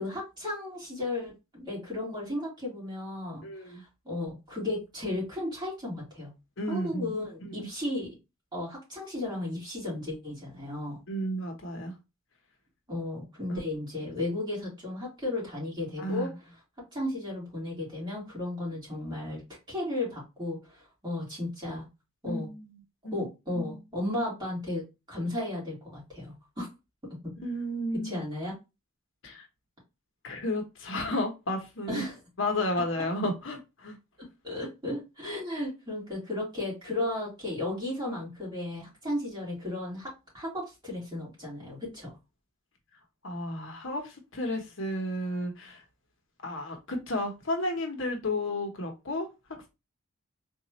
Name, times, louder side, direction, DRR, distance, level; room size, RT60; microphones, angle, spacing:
voice 1, 0.0-1.3 1.6-6.3 6.7-8.1 8.5-11.0 12.9-16.3 16.9-19.4 19.7-21.9 22.2-22.5 23.1-24.8 25.1-26.7 27.1-27.3 28.0-28.6 31.9-32.2 34.4-42.1, left 1 dB, 20° right, 2.4 m, -34 dB
voice 2, 3.4-3.8 6.6-7.2 7.5-7.7 11.1-11.9 13.5-13.6 16.0-16.3 22.2-22.8 23.0-23.2 23.6-23.8 27.4-28.1 29.2-29.5 30.2-32.0 32.4-34.0 43.2-45.8 46.4-49.3, left 1 dB, 65° left, 0.9 m, -32 dB
3.9 x 2.4 x 2.9 m
head